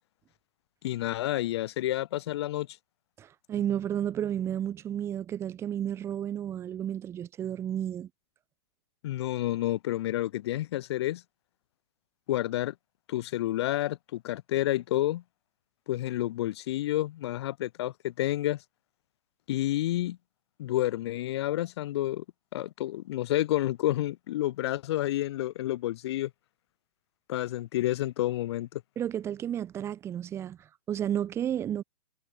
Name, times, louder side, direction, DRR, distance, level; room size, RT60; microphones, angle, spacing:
voice 1, 0.8-2.7 9.0-11.2 12.3-12.7 13.1-15.2 15.9-18.6 19.5-20.2 20.6-22.2 22.5-26.3 27.3-28.8, left 14 dB, 45° left, 0.4 m, -29 dB
voice 2, 3.2-8.1 29.0-31.8, right 10 dB, 15° right, 0.5 m, -32 dB
figure-of-eight pair, 110°, 19 cm